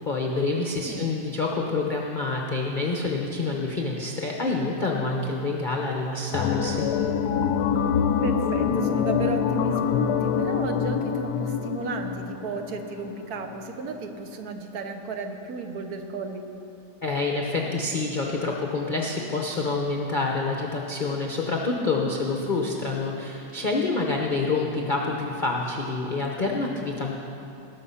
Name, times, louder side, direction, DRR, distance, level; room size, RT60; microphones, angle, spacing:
voice 1, 0.1-6.9 17.0-27.1, left 3 dB, 40° left, 0 dB, 0.7 m, -27 dB
sound 1, 6.3-13.4 13.6-13.7, left 7 dB, 75° left, 1.1 m, -25 dB
voice 2, 8.2-16.5 21.8-22.1, right 4 dB, 65° right, 6 dB, 1.4 m, -34 dB
19.0 x 6.7 x 5.6 m, 2.8 s
omnidirectional pair, 1.9 m